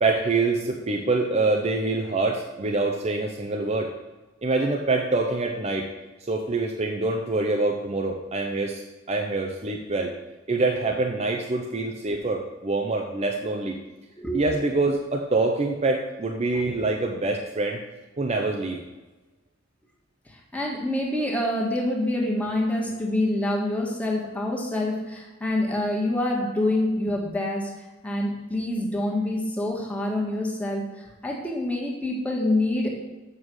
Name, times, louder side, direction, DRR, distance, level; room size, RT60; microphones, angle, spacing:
voice 1, 0.0-3.9 4.4-5.9 6.3-10.1 10.5-13.8 14.3-17.8 18.2-18.8, right 3 dB, 35° right, 2 dB, 0.7 m, -25 dB
voice 2, 20.3-27.7 28.0-30.9 31.2-32.9, left 1 dB, 5° left, -2 dB, 1.7 m, -26 dB
7.4 x 6.7 x 6.3 m, 1.1 s
head